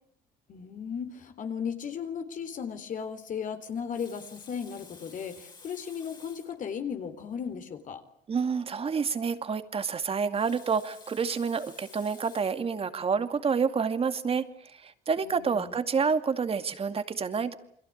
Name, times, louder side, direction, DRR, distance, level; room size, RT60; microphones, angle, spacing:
voice 1, 0.5-8.0 15.2-15.8, left 7 dB, 50° left, 8 dB, 3.7 m, -36 dB
Water tap faucet, 3.7-6.6 7.4-7.5 7.8-7.9 10.1-12.7 13.4-13.6, left 4 dB, 25° left, 4.5 m, -52 dB
voice 2, 8.3-17.6, right 5 dB, 35° right, 9 dB, 2.4 m, -28 dB
29.0 x 22.5 x 8.7 m, 0.68 s
cardioid pair, 110°, 17 cm